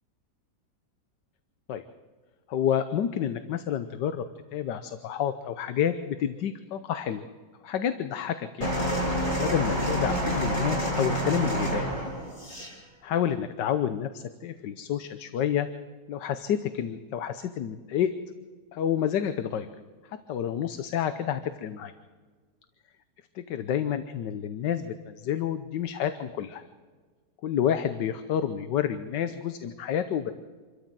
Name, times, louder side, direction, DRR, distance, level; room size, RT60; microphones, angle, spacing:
voice 1, 2.5-4.2 4.5-7.2 7.6-8.7 9.4-11.9 13.0-15.7 16.1-18.1 18.7-19.7 20.3-21.9 23.3-26.6 27.4-30.3, left 9 dB, 85° left, 10 dB, 1.5 m, -29 dB
sound 1, 8.6-12.7 13.6-13.7, equal, 20° left, 6.6 m, -28 dB
27.0 x 13.0 x 7.6 m, 1.5 s
omnidirectional pair, 1.8 m